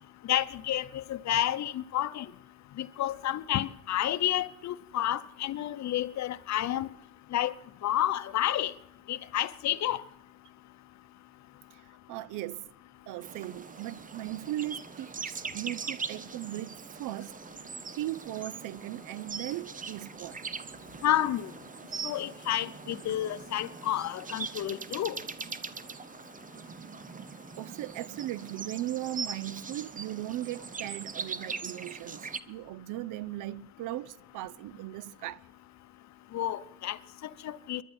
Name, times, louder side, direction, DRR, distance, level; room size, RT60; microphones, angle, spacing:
voice 1, 0.3-2.2 2.8-6.9 7.3-7.5 7.8-8.7 9.1-10.0 21.0-21.5 22.0-25.2 36.3-37.0 37.4-37.8, left 12 dB, 65° left, 0.8 m, -30 dB
voice 2, 12.1-12.6 13.1-17.4 18.0-20.4 27.6-35.4, right 15 dB, 90° right, 0.6 m, -38 dB
sound 1, 13.2-32.4, right 5 dB, 25° right, 0.7 m, -41 dB
23.0 x 11.0 x 4.3 m
cardioid pair, 90°, 30 cm